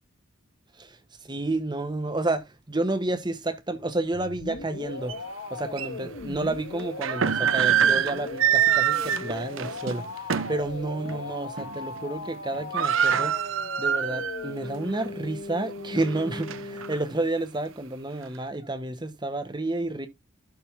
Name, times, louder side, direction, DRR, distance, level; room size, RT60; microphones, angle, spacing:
voice 1, 1.3-5.1 5.5-10.0 10.5-13.3 13.8-20.1, right 2 dB, 20° right, 1.2 m, -30 dB
sound 1, 4.1-17.0, left 3 dB, 70° left, 1.6 m, -38 dB
sound 2, 5.1-5.2 5.8-5.9 6.8-10.6 11.0-11.2 11.6-12.0 12.2-12.3 12.5-14.5 14.9-15.0 15.6-16.9, right 9 dB, 70° right, 0.6 m, -25 dB
11.5 x 3.9 x 3.5 m
head